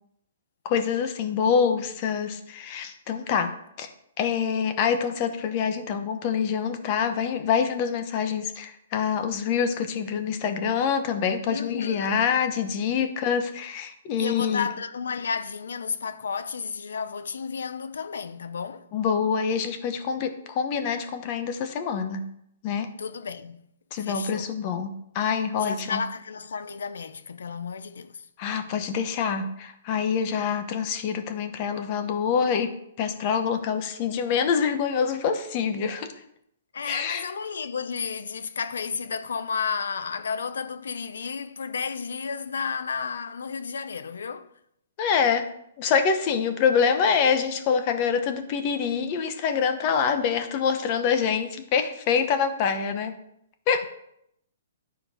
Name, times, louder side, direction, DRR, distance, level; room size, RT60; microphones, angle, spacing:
voice 1, 0.6-3.5 3.8-3.9 4.2-14.7 18.9-22.2 22.6-22.9 23.9-26.0 28.4-32.7 33.0-36.1 36.8-37.2 45.0-45.5 45.8-53.2 53.7-53.8, left 6 dB, 30° left, 1.0 m, -25 dB
voice 2, 11.5-12.2 14.1-18.9 23.0-23.7 24.0-24.5 25.5-28.3 36.7-44.5, left 6 dB, 85° left, 0.7 m, -32 dB
11.5 x 4.5 x 5.0 m
hypercardioid pair, 160°, 0 cm